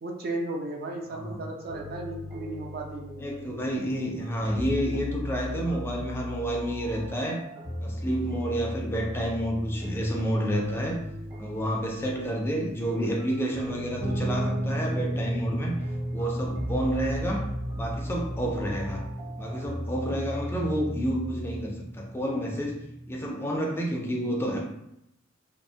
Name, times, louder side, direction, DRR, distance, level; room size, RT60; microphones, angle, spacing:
voice 1, 0.0-3.1, right 2 dB, 50° right, 2 dB, 0.4 m, -34 dB
sound 1, 1.7-21.6, equal, 25° right, 0.8 m, -38 dB
voice 2, 3.2-7.4 7.8-11.0 11.4-15.8 16.1-17.4 17.7-19.0 19.4-22.8 23.1-24.6, equal, 10° left, -1 dB, 0.3 m, -29 dB
Guitar, 14.0-23.3, right 1 dB, 90° right, 0.7 m, -34 dB
2.7 x 2.1 x 2.6 m, 0.80 s
head